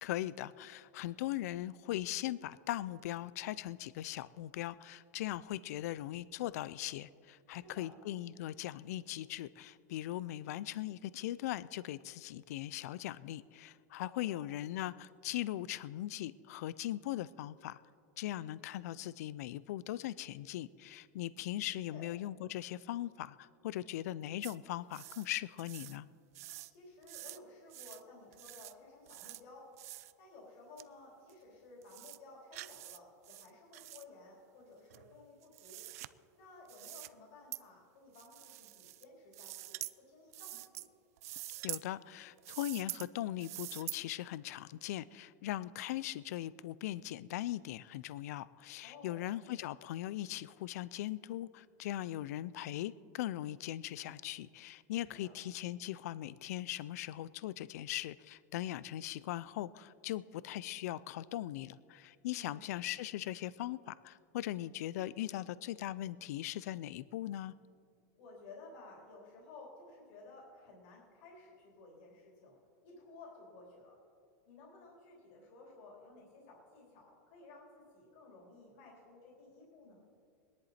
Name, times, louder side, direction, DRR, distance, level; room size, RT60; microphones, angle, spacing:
voice 1, 0.0-17.8 18.2-26.1 41.6-67.5, left 14 dB, 60° left, 18 dB, 0.3 m, -40 dB
voice 2, 7.5-7.9 14.1-14.4 21.6-22.1 26.7-29.7 30.2-35.8 36.3-40.8 48.8-49.3 55.0-55.3 62.3-62.7 68.2-72.6 72.8-74.0 74.5-80.0, left 3 dB, 45° left, -2 dB, 3.3 m, -55 dB
sound 1, 24.4-24.5 24.9-25.3 25.6-26.0 26.3-26.7 27.0-27.4 27.7-28.0 28.3-28.7 29.1-29.4 29.8-30.1 30.8-30.9 31.3-31.4 31.8-32.2 32.5-33.0 33.2-34.0 34.9-36.1 36.7-37.1 37.5-37.6 38.1-39.0 39.3-39.9 40.3-40.9 41.2-41.8 42.4-43.1 43.4-44.0, right 17 dB, 60° right, 0.4 m, -46 dB
21.5 x 10.5 x 4.2 m, 2.3 s
supercardioid pair, 170°, 9 cm